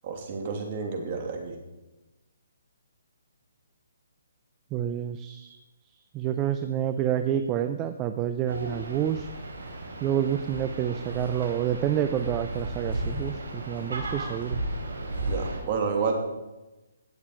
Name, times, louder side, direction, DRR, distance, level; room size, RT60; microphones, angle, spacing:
voice 1, 0.0-1.6 15.3-16.1, right 5 dB, 40° right, 2 dB, 2.8 m, -30 dB
voice 2, 4.7-5.6 6.1-9.3 10.0-14.6, right 10 dB, 20° right, 8 dB, 0.5 m, -28 dB
sound 1, 8.5-15.6, right 1 dB, 85° right, 4.5 m, -34 dB
17.5 x 7.3 x 4.8 m, 1.1 s
hypercardioid pair, 155°, 0 cm